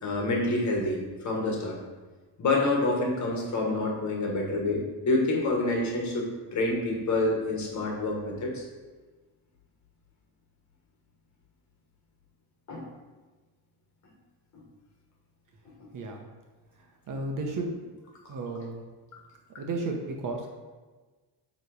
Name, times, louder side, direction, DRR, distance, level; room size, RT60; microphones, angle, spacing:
voice 1, 0.0-1.8 2.4-6.3 6.5-8.6 12.7-12.9 14.5-14.6 15.8-15.9, left 2 dB, 45° left, 0 dB, 1.4 m, -27 dB
voice 2, 15.9-16.3 17.1-17.9 18.3-18.8 19.6-20.5, right 3 dB, 50° right, 2 dB, 1.0 m, -33 dB
7.5 x 3.3 x 4.8 m, 1.3 s
cardioid pair, 170°, 41 cm